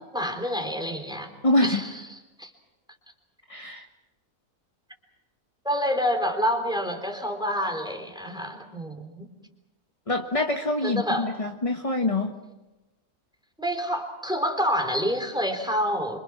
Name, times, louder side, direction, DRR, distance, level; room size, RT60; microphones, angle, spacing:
voice 1, 0.0-1.3 1.6-2.5 5.6-9.3 10.8-11.3 13.6-16.2, equal, 5° right, 5 dB, 3.6 m, -28 dB
voice 2, 1.4-1.8 3.5-3.9 10.1-12.3, left 2 dB, 25° left, 4 dB, 1.4 m, -25 dB
27.5 x 26.0 x 6.1 m, 1.0 s
omnidirectional pair, 1.6 m